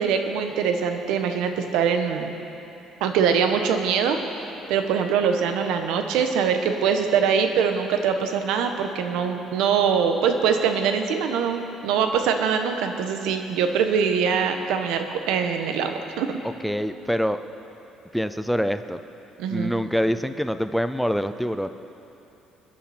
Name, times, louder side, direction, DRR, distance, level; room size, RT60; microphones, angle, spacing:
voice 1, 0.0-2.3 3.0-4.2 4.7-16.4 19.4-19.7, right 6 dB, 85° right, 6 dB, 1.2 m, -23 dB
voice 2, 16.6-17.4 18.1-19.0 19.5-21.7, equal, ahead, 10 dB, 0.4 m, -25 dB
23.5 x 10.5 x 4.4 m, 3.0 s
cardioid pair, 125°, 0 cm